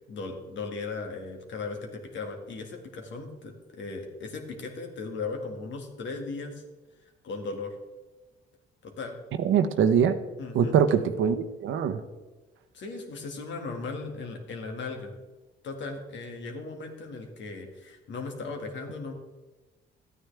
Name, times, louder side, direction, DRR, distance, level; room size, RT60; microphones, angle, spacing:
voice 1, 0.1-6.6 7.2-7.8 8.8-9.2 10.4-10.8 12.7-15.1 15.6-19.1, left 3 dB, 70° left, 3 dB, 2.0 m, -37 dB
voice 2, 9.4-10.1 10.5-12.0, right 7 dB, 80° right, 8 dB, 0.9 m, -23 dB
13.0 x 9.2 x 3.4 m, 1.2 s
cardioid pair, 90°, 20 cm